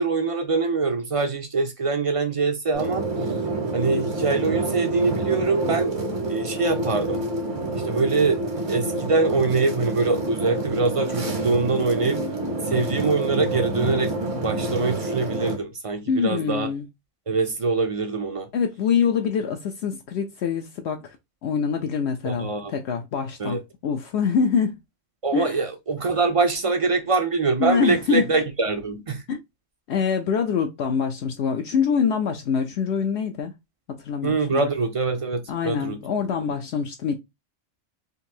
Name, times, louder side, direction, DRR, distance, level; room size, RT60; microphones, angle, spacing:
voice 1, 0.0-3.1 3.7-5.9 6.3-7.2 7.8-8.4 8.7-12.2 12.7-14.1 14.4-16.7 17.3-18.5 22.2-22.7 23.4-23.6 25.2-29.2 34.2-36.0, right 4 dB, 45° right, 0.4 m, -24 dB
sound 1, 2.7-15.6, right 2 dB, 80° right, 1.5 m, -28 dB
voice 2, 16.1-16.8 18.5-21.2 21.4-24.8 25.3-25.6 27.6-28.3 29.3-29.4 29.9-33.5 33.9-34.6 35.5-37.2, left 6 dB, 70° left, 0.8 m, -25 dB
3.9 x 2.6 x 2.7 m
omnidirectional pair, 1.2 m